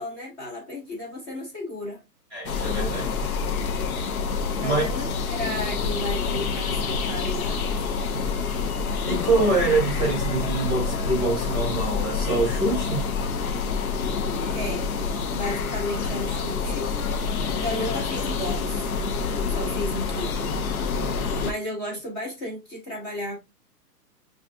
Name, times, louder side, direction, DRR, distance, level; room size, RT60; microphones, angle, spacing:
voice 1, 0.0-2.0 4.6-8.0 14.5-14.9 15.3-16.9 17.6-18.9 19.5-20.6 21.4-23.4, left 1 dB, 20° left, 0.9 m, -33 dB
voice 2, 2.3-3.4 4.6-4.8 9.0-13.1, right 3 dB, 15° right, 0.9 m, -25 dB
sound 1, 2.4-21.5, left 5 dB, 60° left, 0.7 m, -27 dB
5.3 x 2.4 x 2.5 m
hypercardioid pair, 165°, 49 cm